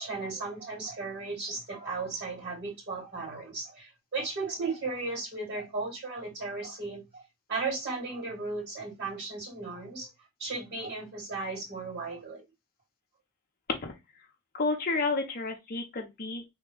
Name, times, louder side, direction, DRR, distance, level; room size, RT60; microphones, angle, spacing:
voice 1, 0.0-7.2 7.5-10.1 10.4-12.4, right 3 dB, 50° right, 2.2 m, -35 dB
voice 2, 14.5-16.4, left 3 dB, 40° left, 0.6 m, -30 dB
3.3 x 2.2 x 3.6 m
head